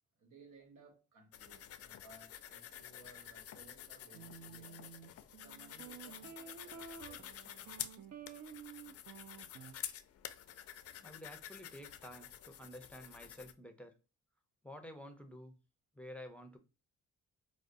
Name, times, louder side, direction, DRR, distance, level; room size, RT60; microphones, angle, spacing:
voice 1, 0.2-4.9 5.4-7.7, right 3 dB, 85° right, 1.3 m, -61 dB
sound 1, 1.3-13.5, left 10 dB, 50° left, 0.4 m, -49 dB
sound 2, 4.1-9.7, right 8 dB, 60° right, 0.6 m, -52 dB
voice 2, 11.0-13.9 14.6-15.5 15.9-16.6, equal, 5° left, 0.5 m, -51 dB
4.9 x 2.0 x 2.5 m
cardioid pair, 90°, 30 cm